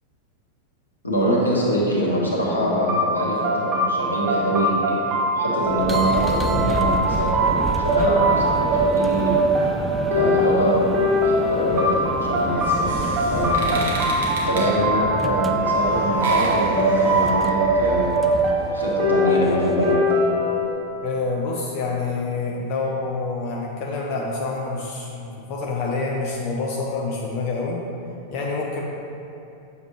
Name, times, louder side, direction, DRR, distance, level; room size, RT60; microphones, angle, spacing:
voice 1, 1.0-9.4 10.1-12.9 13.3-18.2 18.7-20.0, equal, 80° left, -4 dB, 1.3 m, -24 dB
sound 1, 2.9-20.7, right 1 dB, 30° right, 1.3 m, -22 dB
sound 2, 5.6-20.1, right 2 dB, 10° right, 0.4 m, -31 dB
sound 3, 12.4-17.9, right 1 dB, 65° right, 1.2 m, -34 dB
voice 2, 21.0-27.8 28.3-28.8, left 3 dB, 45° left, -2 dB, 0.7 m, -27 dB
7.9 x 6.8 x 2.9 m, 2.7 s
figure-of-eight pair, 90°, 0 cm